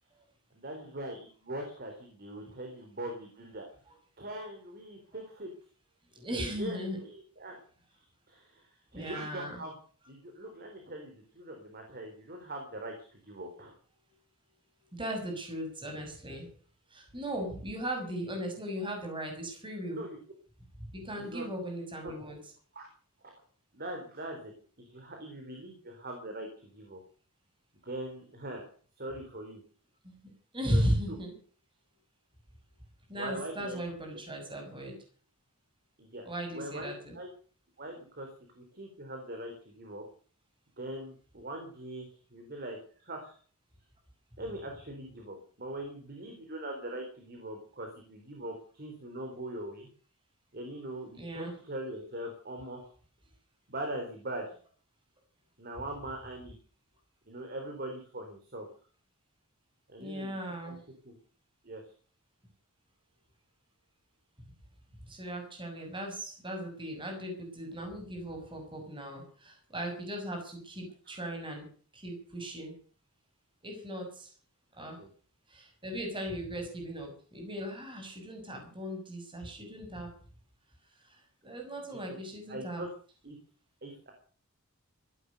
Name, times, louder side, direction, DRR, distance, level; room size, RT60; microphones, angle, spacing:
voice 1, 0.5-3.7 4.2-5.5 6.5-7.6 7.9-9.7 10.1-13.7 19.9-20.2 21.2-21.5 22.0-22.1 22.7-22.9 23.7-24.5 24.8-27.0 27.8-28.7 29.0-29.6 30.7-31.2 33.2-33.8 36.0-36.2 36.5-37.3 37.8-38.3 38.6-40.1 40.8-43.4 44.4-49.9 50.5-52.9 53.7-54.5 55.6-56.6 57.3-58.7 59.9-60.4 60.6-60.8 61.0-61.1 61.6-61.8 71.1-71.2 75.0-75.1 82.1-82.2 82.5-82.9 83.2-83.4 83.8-84.1, right 1 dB, 45° right, 3 dB, 4.0 m, -41 dB
voice 2, 6.1-7.0 8.9-9.6 14.9-16.5 16.9-20.0 20.9-22.4 30.0-30.2 30.5-31.3 33.1-34.9 36.2-37.1 51.2-51.5 60.0-60.8 65.1-71.7 71.9-72.7 73.6-74.3 74.8-75.0 75.5-80.1 81.0-82.8, equal, 20° right, 2 dB, 6.4 m, -37 dB
16.5 x 11.5 x 6.7 m, 0.43 s
head